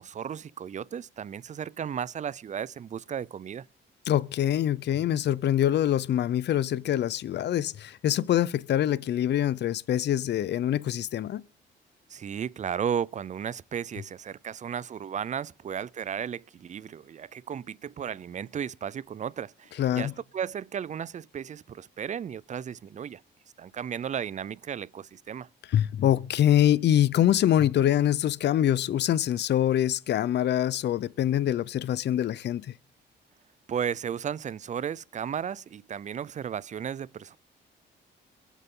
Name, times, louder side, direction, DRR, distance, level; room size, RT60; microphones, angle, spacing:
voice 1, 0.0-3.7 12.1-23.2 23.6-25.5 33.7-37.4, right 8 dB, 35° right, 0.5 m, -34 dB
voice 2, 4.1-11.4 19.8-20.1 25.7-32.7, left 11 dB, 60° left, 0.6 m, -24 dB
22.5 x 8.2 x 3.7 m
cardioid pair, 90°, 20 cm